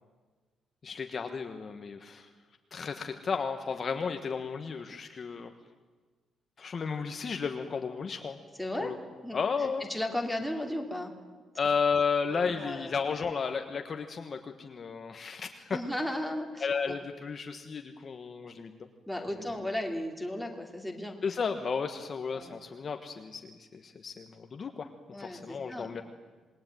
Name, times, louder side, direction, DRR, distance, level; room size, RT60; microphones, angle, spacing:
voice 1, 0.8-2.3 2.7-5.5 6.6-8.4 8.8-9.0 9.3-9.9 11.6-15.8 16.6-18.9 21.2-24.9 25.2-26.0, left 5 dB, 35° left, 6 dB, 1.4 m, -33 dB
voice 2, 8.6-8.9 9.2-9.4 9.9-11.1 12.3-12.9 15.7-16.9 19.1-21.2 22.3-22.5 25.1-26.0, left 1 dB, ahead, 4 dB, 2.7 m, -35 dB
27.5 x 20.5 x 9.2 m, 1.4 s
cardioid pair, 170°, 0 cm